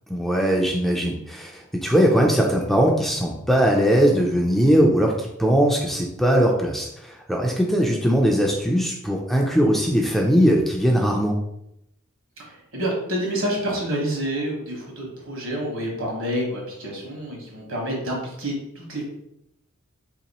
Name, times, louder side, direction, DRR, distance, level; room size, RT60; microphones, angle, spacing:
voice 1, 0.1-11.4, equal, ahead, -1 dB, 0.3 m, -20 dB
voice 2, 12.4-19.0, equal, 70° right, -1 dB, 1.2 m, -28 dB
2.9 x 2.8 x 4.1 m, 0.80 s
head